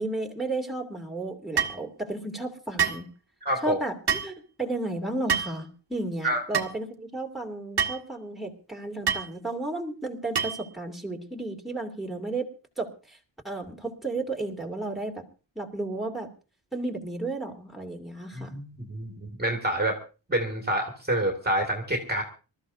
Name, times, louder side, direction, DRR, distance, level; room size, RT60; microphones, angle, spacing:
voice 1, 0.0-3.1 3.6-12.5 12.8-13.2 13.4-15.2 15.6-16.3 16.7-18.5, right 2 dB, ahead, 0 dB, 2.7 m, -33 dB
sound 1, 1.6-1.8 2.8-3.0 4.1-4.3 5.3-5.6 6.5-6.7 7.8-8.0 9.1-9.3 10.3-10.7, right 7 dB, 55° right, 1.6 m, -26 dB
voice 2, 3.5-3.8 6.2-6.4 18.3-20.0 20.3-22.2, right 1 dB, 20° right, 2 dB, 2.1 m, -27 dB
26.0 x 14.0 x 2.7 m, 0.34 s
wide cardioid pair, 165°, 47 cm